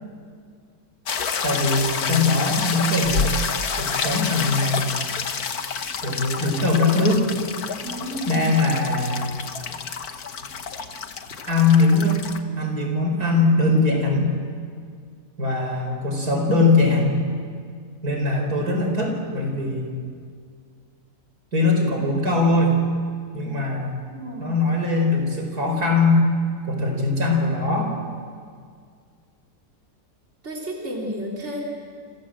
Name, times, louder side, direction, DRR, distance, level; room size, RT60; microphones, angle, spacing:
sound 1, 1.1-12.4, left 6 dB, 75° left, 1.8 m, -28 dB
voice 1, 1.4-3.3 3.8-5.0 6.0-7.3 8.2-9.4 11.5-12.3 12.6-14.3 15.4-17.2 18.0-19.9 21.5-22.8 23.3-24.0 24.4-26.2 26.6-28.0, left 3 dB, 75° right, 2 dB, 5.1 m, -21 dB
voice 2, 7.8-8.5 24.1-24.5 30.4-31.6, equal, 45° right, -2 dB, 4.2 m, -32 dB
28.5 x 27.0 x 7.7 m, 2.1 s
omnidirectional pair, 1.6 m